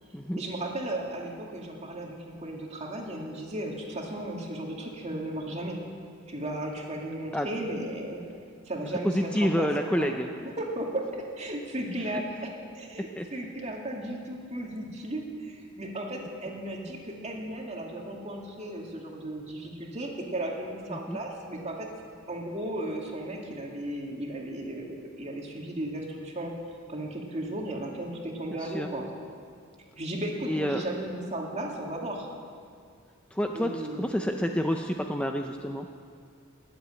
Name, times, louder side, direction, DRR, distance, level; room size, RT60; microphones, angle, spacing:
voice 1, 0.3-5.8 6.3-8.2 8.7-9.7 9.9-10.1 10.4-21.9 22.3-26.5 26.9-29.1 30.0-32.3 33.5-34.1, right 1 dB, 30° right, 0 dB, 2.2 m, -35 dB
voice 2, 9.0-10.3 13.2-13.3 20.9-21.2 28.6-28.9 30.5-30.8 33.3-35.9, equal, 5° left, 4 dB, 0.5 m, -28 dB
20.0 x 8.2 x 8.8 m, 2.2 s
head